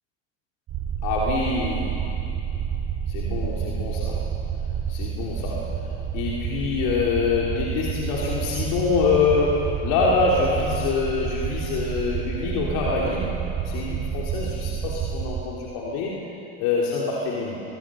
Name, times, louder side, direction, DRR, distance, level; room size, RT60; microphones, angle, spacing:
sound 1, 0.7-15.4, right 7 dB, 55° right, 3.0 m, -29 dB
voice 1, 1.0-1.9 3.1-4.2 4.9-5.7 6.1-13.3 13.6-16.2 16.6-17.6, left 4 dB, 65° left, -4 dB, 3.5 m, -25 dB
23.5 x 20.5 x 6.4 m, 2.8 s
hypercardioid pair, 70°, 35 cm